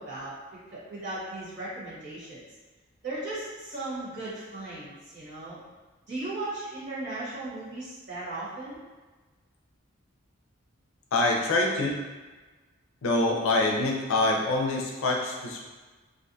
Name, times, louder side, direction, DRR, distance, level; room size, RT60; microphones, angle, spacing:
voice 1, 0.0-2.4 3.0-5.6 6.1-8.8, right 2 dB, 55° right, -10 dB, 1.2 m, -37 dB
voice 2, 11.1-12.0 13.0-15.6, left 2 dB, 85° left, 0 dB, 0.4 m, -25 dB
2.5 x 2.2 x 2.6 m, 1.3 s
head